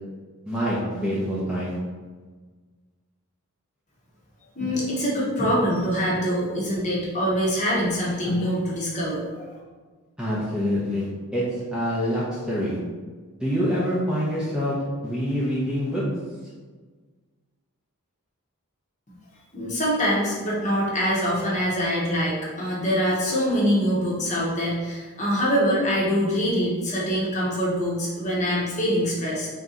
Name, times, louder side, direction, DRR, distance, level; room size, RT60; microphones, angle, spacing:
voice 1, 0.5-1.7 10.2-12.8 13.4-14.7 15.0-16.0, equal, 5° right, -8 dB, 0.7 m, -26 dB
voice 2, 4.5-9.4 19.5-29.5, equal, 35° left, -5 dB, 1.0 m, -24 dB
3.7 x 2.8 x 3.7 m, 1.4 s
head